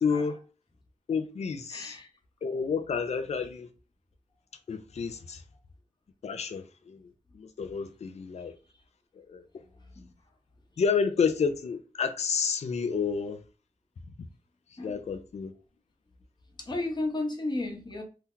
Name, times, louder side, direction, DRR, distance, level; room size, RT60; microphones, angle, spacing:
voice 1, 0.0-0.4 1.1-2.0 2.4-3.7 4.7-5.4 6.2-7.1 7.3-8.5 9.3-9.4 10.8-13.4 14.8-15.5, left 5 dB, 55° left, 0.4 m, -30 dB
voice 2, 1.7-2.1 9.6-10.1 14.8-15.0 16.6-18.0, left 2 dB, 35° left, 0.9 m, -34 dB
2.8 x 2.2 x 3.7 m
cardioid pair, 70°, 13 cm